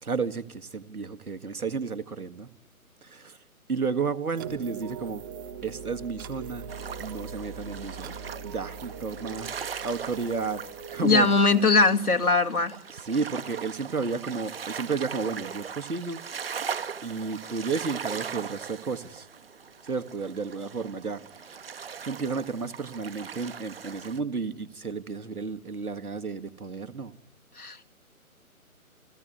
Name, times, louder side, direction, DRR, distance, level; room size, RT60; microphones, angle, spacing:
voice 1, 0.0-2.5 3.0-3.4 3.7-5.2 5.6-6.6 7.0-8.2 8.4-10.6 10.9-11.3 12.9-16.2 17.0-19.3 19.8-21.6 22.0-27.1, right 5 dB, 80° right, 1.8 m, -32 dB
sound 1, 4.4-11.6, right 6 dB, 15° right, 1.1 m, -41 dB
sound 2, 6.7-24.2, right 6 dB, 40° right, 1.0 m, -40 dB
voice 2, 11.0-12.7 27.6-27.9, left 3 dB, 80° left, 2.5 m, -21 dB
29.0 x 16.0 x 9.7 m
figure-of-eight pair, 145°, 44 cm